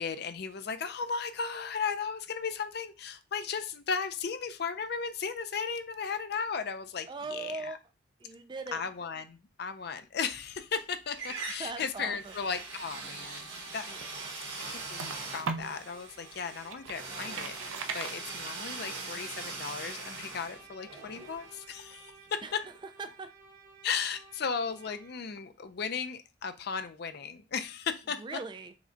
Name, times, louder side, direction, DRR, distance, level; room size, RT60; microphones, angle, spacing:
voice 1, 0.0-7.8 8.7-14.0 14.7-22.4 23.8-28.2, left 6 dB, 55° left, 9 dB, 0.4 m, -36 dB
voice 2, 7.1-7.8 8.2-8.8 11.6-12.3 22.4-22.6 23.0-23.3 28.2-28.7, right 3 dB, 25° right, 10 dB, 0.3 m, -39 dB
sound 1, 10.3-10.8 11.1-22.0, right 3 dB, 65° right, 1.4 m, -42 dB
Bowed string instrument, 11.5-25.4, right 3 dB, 40° right, 1.0 m, -56 dB
sound 2, 13.7-15.8 16.3-18.8, right 5 dB, 90° right, 0.4 m, -39 dB
4.9 x 2.2 x 3.8 m, 0.29 s
head